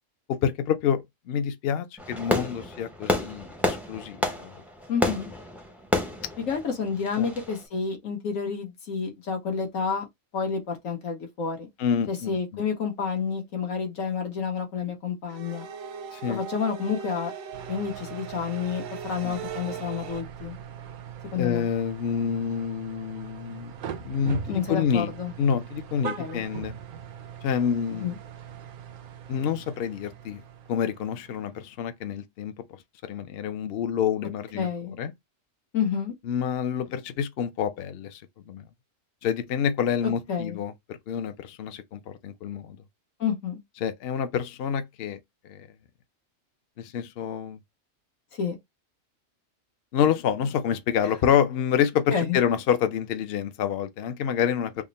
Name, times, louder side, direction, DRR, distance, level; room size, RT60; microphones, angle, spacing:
voice 1, 0.3-4.5 7.2-7.3 11.8-12.6 16.1-16.4 19.2-19.4 21.4-23.7 24.0-25.1 25.4-26.8 27.4-28.1 29.3-30.4 30.7-32.6 33.0-34.7 35.0-35.1 36.3-38.2 38.5-38.6 39.2-42.8 43.8-45.2 45.5-45.7 46.8-47.6 49.9-54.8, left 8 dB, 60° left, 0.7 m, -27 dB
Fireworks, 2.0-7.6, left 1 dB, ahead, 0.4 m, -30 dB
voice 2, 4.9-5.3 6.4-10.1 10.3-11.7 12.1-15.7 16.3-17.3 17.7-20.6 21.3-21.7 24.5-25.3 26.2-26.4 27.9-28.2 34.5-35.0 35.7-36.1 40.3-40.6 43.2-43.6 48.3-48.5 52.1-52.4, left 6 dB, 80° left, 1.4 m, -29 dB
sound 1, 15.3-20.2, right 7 dB, 85° right, 1.0 m, -39 dB
sound 2, 17.5-31.9, right 8 dB, 65° right, 0.5 m, -41 dB
3.6 x 2.1 x 3.9 m
omnidirectional pair, 1.4 m